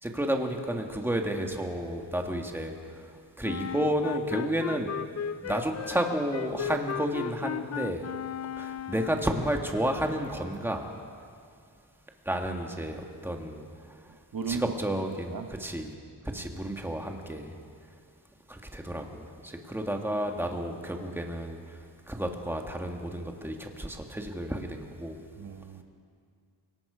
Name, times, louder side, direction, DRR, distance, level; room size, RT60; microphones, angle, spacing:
voice 1, 0.0-3.0 3.4-4.9 5.4-8.1 8.6-10.9 12.2-13.7 14.5-15.9 16.3-17.5 18.5-21.8 22.1-25.2, right 1 dB, 5° right, 2 dB, 1.7 m, -31 dB
Wind instrument woodwind instrument, 3.4-9.4, left 8 dB, 45° left, 0.4 m, -36 dB
voice 2, 14.3-14.7 15.3-15.5 16.3-16.4 25.4-25.8, right 6 dB, 60° right, 6 dB, 1.2 m, -35 dB
29.5 x 18.5 x 5.1 m, 2.3 s
wide cardioid pair, 145°, 39 cm